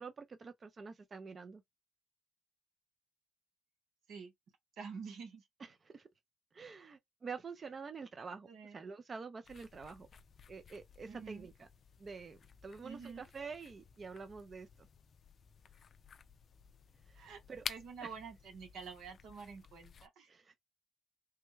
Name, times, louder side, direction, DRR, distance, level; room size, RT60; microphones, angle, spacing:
voice 1, 0.0-1.6 5.6-6.1 6.5-10.1 10.5-11.7 12.0-14.7 17.1-17.6 18.0-18.1 20.3-20.6, right 5 dB, 40° right, 0.5 m, -47 dB
voice 2, 4.8-5.4 8.5-8.8 11.0-11.5 12.8-13.2 17.2-17.4 17.7-20.3, right 5 dB, 80° right, 1.0 m, -48 dB
sound 1, 9.4-20.1, left 6 dB, 50° left, 0.3 m, -52 dB
3.4 x 2.1 x 3.1 m
cardioid pair, 90°, 0 cm